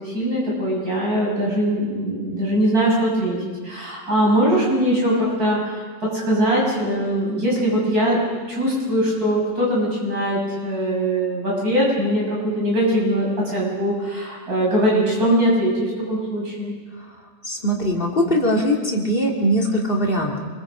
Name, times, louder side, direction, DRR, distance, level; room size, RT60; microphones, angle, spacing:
voice 1, 0.0-3.4 3.6-8.2 8.5-16.7, right 1 dB, 80° right, -4 dB, 7.5 m, -21 dB
voice 2, 17.5-20.4, equal, 35° left, -1 dB, 3.1 m, -21 dB
28.0 x 22.0 x 5.2 m, 1.5 s
omnidirectional pair, 1.6 m